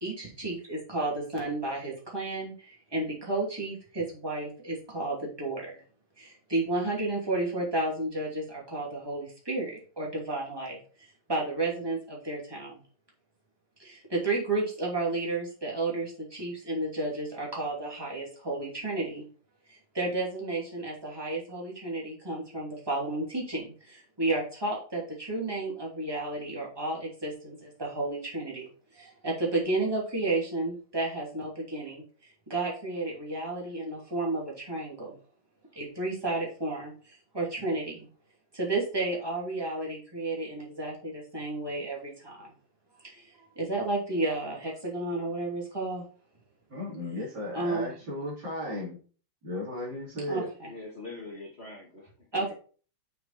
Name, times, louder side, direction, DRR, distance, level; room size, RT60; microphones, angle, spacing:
voice 1, 0.0-5.8 6.2-12.8 13.8-19.2 19.7-35.2 35.7-38.1 38.5-42.5 43.0-46.0 47.5-48.0 50.3-50.7 52.3-52.5, right 2 dB, 10° right, -3 dB, 2.6 m, -32 dB
voice 2, 46.7-49.0 49.4-50.5, left 1 dB, 50° right, -4 dB, 3.7 m, -35 dB
voice 3, 50.6-52.5, left 3 dB, 30° left, -3 dB, 1.9 m, -43 dB
6.6 x 5.9 x 4.1 m, 0.40 s
omnidirectional pair, 2.4 m